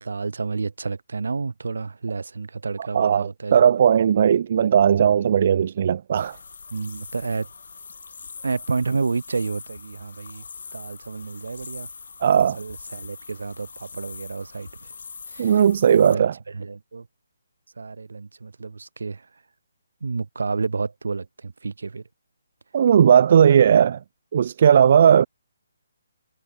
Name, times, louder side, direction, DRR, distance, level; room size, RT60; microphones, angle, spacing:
voice 1, 0.0-3.7 6.7-7.5 8.4-10.4 10.7-11.9 12.3-14.9 15.3-15.6 15.9-17.1 17.8-19.3 20.0-22.0, right 4 dB, 85° right, 1.5 m, -30 dB
voice 2, 2.9-6.4 12.2-12.6 15.4-16.3 22.7-24.0 24.3-25.3, right 8 dB, 40° right, 0.4 m, -17 dB
sound 1, 6.1-16.2, left 5 dB, 65° left, 1.1 m, -42 dB
hypercardioid pair, 170°, 0 cm